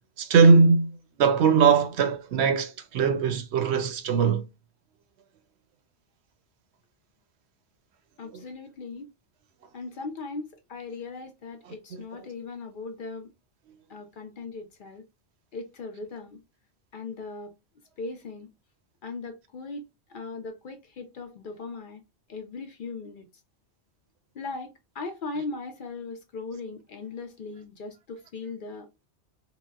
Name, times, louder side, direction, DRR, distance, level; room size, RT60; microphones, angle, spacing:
voice 1, 0.2-0.9 1.2-4.4, right 5 dB, 75° right, 0.8 m, -20 dB
voice 2, 8.2-9.1 9.7-13.3 13.9-15.1 15.5-16.4 16.9-17.5 18.0-18.5 19.0-22.0 22.3-23.3 24.3-28.9, left 3 dB, 55° left, 0.7 m, -38 dB
4.0 x 2.0 x 2.2 m
omnidirectional pair, 1.2 m